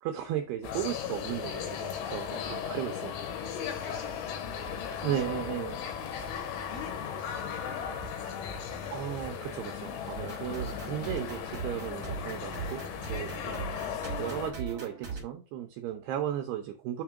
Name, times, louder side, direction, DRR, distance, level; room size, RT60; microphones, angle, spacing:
voice 1, 0.0-3.2 5.0-5.8 8.9-12.8 13.1-17.0, right 11 dB, 90° right, 6 dB, 2.3 m, -35 dB
sound 1, 0.6-14.5, left 7 dB, 80° left, 3.5 m, -37 dB
voice 2, 2.9-5.4 5.9-6.2 6.6-8.8, left 4 dB, 60° left, 0 dB, 3.0 m, -48 dB
sound 2, 10.1-15.2, right 5 dB, 65° right, 0.9 m, -40 dB
7.0 x 3.7 x 4.7 m, 0.33 s
omnidirectional pair, 5.6 m